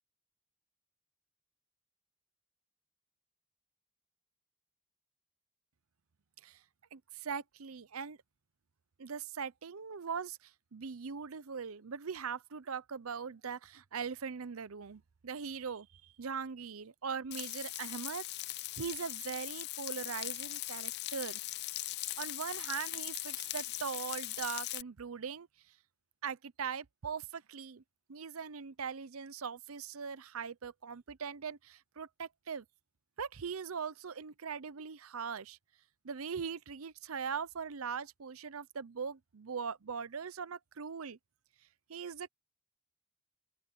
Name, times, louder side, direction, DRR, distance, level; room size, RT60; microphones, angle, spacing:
voice 1, 6.9-8.2 9.0-18.2 18.8-21.4 22.2-25.5 26.2-27.8 28.1-32.6 33.2-35.6 36.0-41.2 41.9-42.3, right 6 dB, 80° right, 0.7 m, -41 dB
Frying (food), 17.3-24.8, left 16 dB, 55° left, 0.5 m, -40 dB
open air
head